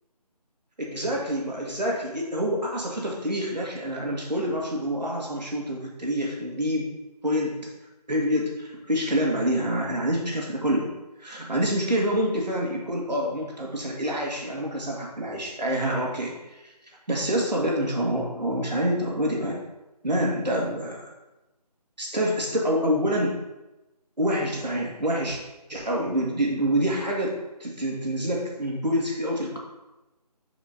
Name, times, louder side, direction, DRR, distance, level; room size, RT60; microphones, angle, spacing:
voice 1, 0.9-6.9 7.2-7.6 8.1-10.9 11.2-16.7 17.1-19.6 20.0-21.1 22.0-23.4 24.2-25.4 25.7-29.6, equal, 85° right, -2 dB, 2.1 m, -27 dB
9.9 x 5.0 x 2.9 m, 1.0 s
figure-of-eight pair, 160°, 21 cm